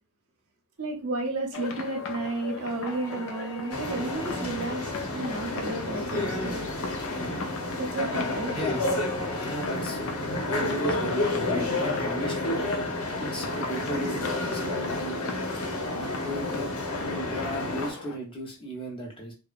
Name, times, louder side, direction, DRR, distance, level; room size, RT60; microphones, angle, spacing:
voice 1, 0.8-6.7 7.8-8.5, right 2 dB, 70° right, 0.7 m, -32 dB
sound 1, 1.5-18.2, left 4 dB, 60° left, 0.4 m, -40 dB
sound 2, 2.8-4.7 8.0-9.8, right 1 dB, 10° right, 0.3 m, -45 dB
sound 3, 3.7-17.9, left 2 dB, 85° left, 0.8 m, -30 dB
voice 2, 8.5-8.9 9.4-10.0 10.5-12.6 13.2-15.4 16.1-16.7 17.0-19.3, equal, 25° left, 0.7 m, -35 dB
2.8 x 2.0 x 2.4 m
head